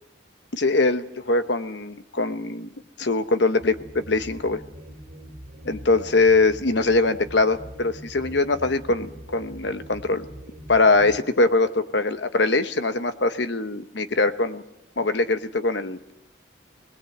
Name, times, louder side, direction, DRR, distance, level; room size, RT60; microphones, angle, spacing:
voice 1, 0.5-2.7 3.0-4.6 5.6-10.2 10.7-14.6 15.0-16.1, left 3 dB, 65° left, 10 dB, 1.1 m, -22 dB
sound 1, 3.6-11.2, right 1 dB, 45° right, 3.3 m, -42 dB
22.0 x 19.5 x 8.0 m, 0.87 s
head